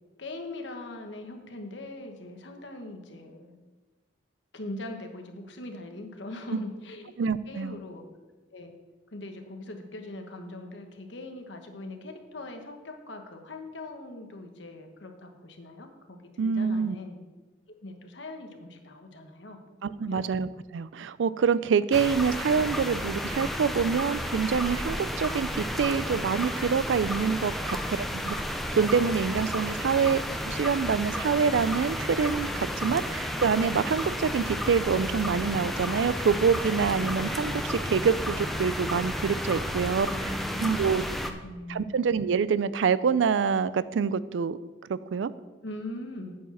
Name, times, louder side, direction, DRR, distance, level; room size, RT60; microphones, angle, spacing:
voice 1, 0.2-3.6 4.5-7.2 7.5-8.0 8.5-8.7 9.1-17.2 17.8-20.3 40.0-41.9 45.6-46.4, left 2 dB, 70° left, 4 dB, 1.2 m, -41 dB
voice 2, 7.2-7.8 16.4-17.0 19.8-40.1 40.6-41.0 41.7-44.6 44.9-45.3, right 6 dB, 75° right, 17 dB, 0.4 m, -26 dB
sound 1, 21.9-41.3, equal, ahead, 0.5 m, -32 dB
9.1 x 4.8 x 7.3 m, 1.2 s
head